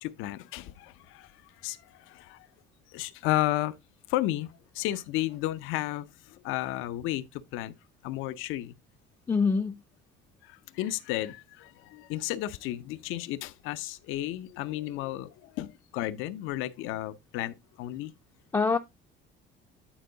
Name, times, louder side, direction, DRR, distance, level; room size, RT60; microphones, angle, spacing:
voice 1, 0.0-2.5 2.9-3.8 4.1-7.7 8.0-8.8 10.4-18.1, left 15 dB, 85° left, 0.6 m, -33 dB
voice 2, 9.3-9.8 18.5-18.8, left 4 dB, 15° left, 0.4 m, -24 dB
9.0 x 4.6 x 3.8 m
cardioid pair, 140°, 20 cm